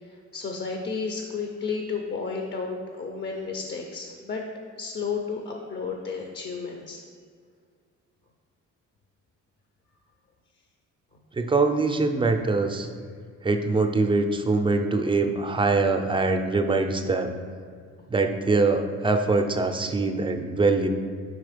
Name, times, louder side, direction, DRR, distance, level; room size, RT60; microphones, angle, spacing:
voice 1, 0.1-4.4 4.8-7.0, left 5 dB, 35° left, 2 dB, 0.6 m, -32 dB
voice 2, 11.4-12.9 13.4-17.3 18.1-20.9, right 3 dB, 15° right, 6 dB, 0.5 m, -23 dB
4.8 x 4.1 x 5.0 m, 2.1 s
cardioid pair, 90°, 30 cm